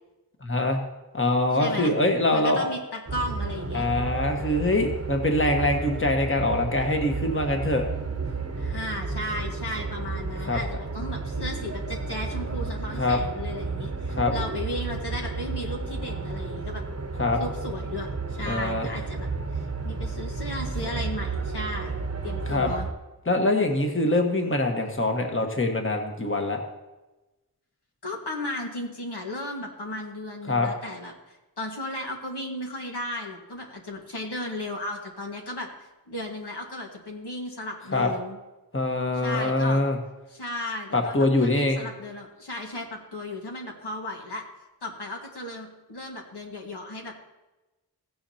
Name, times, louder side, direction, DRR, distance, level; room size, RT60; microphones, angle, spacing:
voice 1, 0.4-0.8 1.1-2.7 3.7-7.8 10.5-10.6 13.0-13.2 14.1-14.3 17.2-17.4 18.5-18.9 22.5-22.7 23.3-26.6 30.5-30.7 37.9-38.1 38.7-40.0 40.9-41.9, left 2 dB, 30° left, 3 dB, 1.4 m, -24 dB
voice 2, 1.6-2.0 2.3-3.9 8.6-16.8 17.4-22.9 28.0-35.7 36.1-38.4 39.1-39.8 40.3-44.4 44.8-47.1, left 1 dB, 80° left, 0 dB, 1.8 m, -35 dB
sound 1, 3.1-22.9, right 4 dB, 40° right, 0.9 m, -32 dB
16.0 x 9.5 x 2.9 m, 1.1 s
wide cardioid pair, 45°, 39 cm